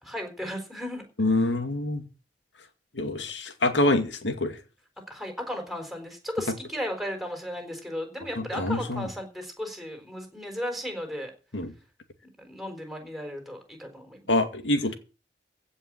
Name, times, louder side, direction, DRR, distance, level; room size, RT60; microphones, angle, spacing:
voice 1, 0.0-1.0 5.1-11.3 12.2-14.3, equal, ahead, 4.2 m, -35 dB
voice 2, 1.2-2.0 3.0-4.5 8.4-9.1 11.5-11.7 14.3-14.9, left 2 dB, 90° left, 2.2 m, -25 dB
16.0 x 5.6 x 8.7 m
head